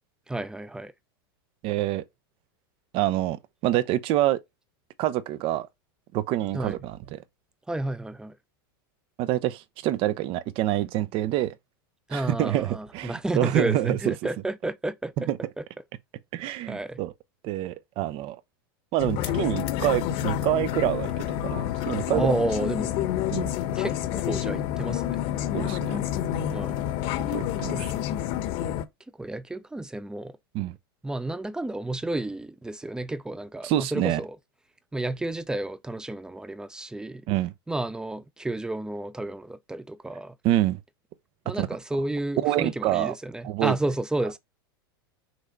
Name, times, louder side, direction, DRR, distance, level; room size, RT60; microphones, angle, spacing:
voice 1, 0.3-0.9 6.5-6.8 7.7-8.4 12.1-15.1 15.6-15.7 16.7-17.0 22.1-23.0 23.8-25.2 26.5-26.8 27.7-27.9 29.2-30.4 31.0-34.4 34.9-37.2 37.7-40.3 41.5-44.4, right 2 dB, 5° right, 0.6 m, -31 dB
voice 2, 1.6-2.0 2.9-4.4 5.0-5.7 6.1-7.2 9.2-11.6 12.1-14.1 15.3-15.4 16.3-17.1 17.4-18.4 18.9-22.3 23.3-23.5 25.5-26.0 27.3-27.9 30.5-30.8 33.6-34.2 37.3-37.5 40.4-40.8 41.6-41.7 42.4-43.1 43.4-43.8, right 14 dB, 45° right, 0.8 m, -26 dB
sound 1, 19.0-28.8, left 11 dB, 50° left, 1.1 m, -28 dB
6.2 x 3.3 x 5.3 m
hypercardioid pair, 110°, 12 cm